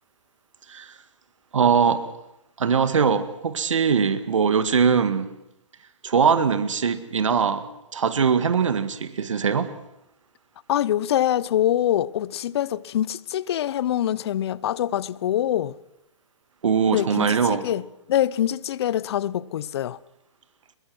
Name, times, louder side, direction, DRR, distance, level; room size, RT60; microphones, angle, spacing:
voice 1, 1.5-2.0 2.6-5.3 6.0-9.7 16.6-17.7, right 6 dB, 80° right, 1.9 m, -21 dB
voice 2, 10.7-15.7 16.9-17.8 18.1-20.0, left 11 dB, 55° left, 0.8 m, -24 dB
23.0 x 21.5 x 6.2 m
hypercardioid pair, 130°, 16 cm